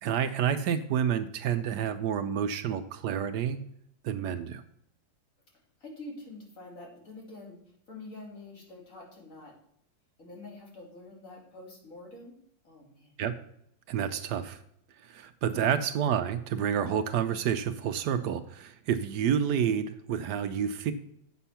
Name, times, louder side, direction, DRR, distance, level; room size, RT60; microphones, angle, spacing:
voice 1, 0.0-3.6 4.0-4.6 13.2-13.3 13.9-14.6 15.0-20.9, right 8 dB, 70° right, 9 dB, 1.1 m, -29 dB
voice 2, 5.8-9.5 10.2-12.3 12.6-13.1 15.5-15.8, left 2 dB, 45° left, -1 dB, 2.8 m, -46 dB
8.3 x 6.1 x 5.6 m, 0.72 s
omnidirectional pair, 2.1 m